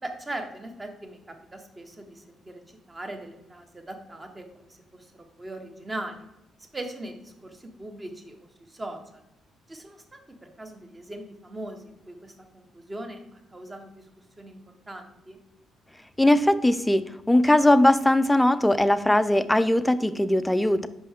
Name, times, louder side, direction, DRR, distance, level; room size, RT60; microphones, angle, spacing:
voice 1, 0.0-6.3 6.7-9.2 9.7-14.1 14.4-14.6 14.9-15.4, right 1 dB, 20° right, 5 dB, 1.1 m, -40 dB
voice 2, 16.2-20.9, left 1 dB, 10° left, 12 dB, 0.4 m, -20 dB
5.3 x 5.3 x 3.6 m, 0.86 s
cardioid pair, 90°, 0 cm